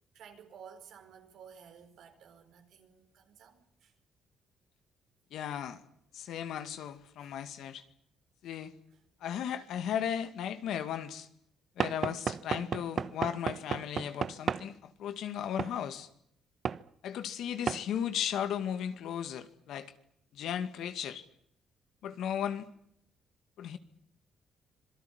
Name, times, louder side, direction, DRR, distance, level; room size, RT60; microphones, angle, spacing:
voice 1, 0.1-3.9 5.5-5.7 7.2-7.4, right 7 dB, 75° right, 4.8 m, -54 dB
voice 2, 5.3-5.8 6.1-7.8 8.4-8.7 9.2-11.3 11.8-16.1 17.0-19.9 20.3-21.2 22.0-22.7 23.6-23.8, left 9 dB, 80° left, 2.2 m, -36 dB
Knock / Wood, 11.8-14.7 15.6-15.8 16.7-16.8 17.7-17.9, right 7 dB, 50° right, 0.9 m, -33 dB
26.0 x 18.5 x 9.7 m
cardioid pair, 90°, 0 cm